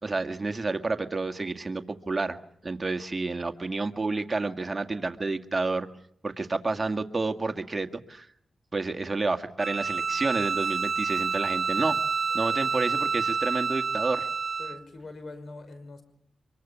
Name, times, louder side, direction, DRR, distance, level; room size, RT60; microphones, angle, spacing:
voice 1, 0.0-5.9 6.2-8.3 8.7-12.0 12.3-14.3, right 3 dB, 30° right, 6 dB, 2.1 m, -30 dB
Bowed string instrument, 9.6-14.8, right 5 dB, 55° right, 1.1 m, -28 dB
voice 2, 14.6-16.0, left 3 dB, 65° left, 10 dB, 5.3 m, -43 dB
24.5 x 23.5 x 7.1 m, 0.65 s
cardioid pair, 60°, 0 cm